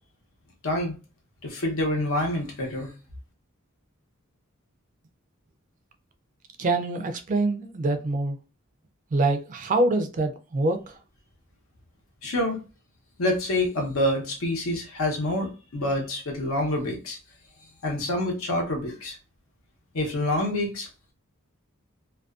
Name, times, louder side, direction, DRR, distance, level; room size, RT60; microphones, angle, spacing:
voice 1, 0.6-0.9 1.4-2.9 12.2-12.6 13.2-17.2 17.8-19.2 19.9-20.9, left 1 dB, 75° left, 0.8 m, -27 dB
voice 2, 6.6-8.4 9.1-10.8, right 2 dB, 40° right, 0.4 m, -25 dB
2.3 x 2.2 x 2.3 m
head